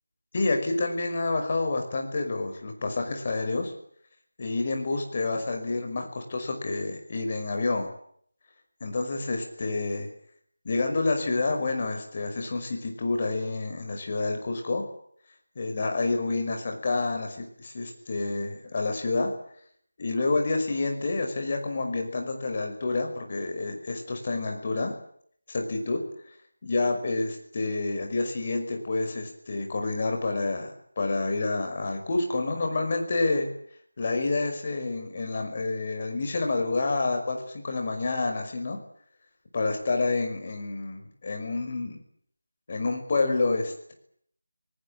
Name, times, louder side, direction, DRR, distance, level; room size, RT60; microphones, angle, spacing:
voice 1, 0.3-3.7 4.4-7.9 8.8-10.1 10.6-14.8 15.6-19.3 20.0-24.9 25.5-26.0 26.6-33.5 34.0-38.8 39.5-42.0 42.7-43.9, left 3 dB, 30° left, 3 dB, 5.6 m, -28 dB
27.0 x 19.0 x 8.8 m, 0.64 s
figure-of-eight pair, 165°, 0 cm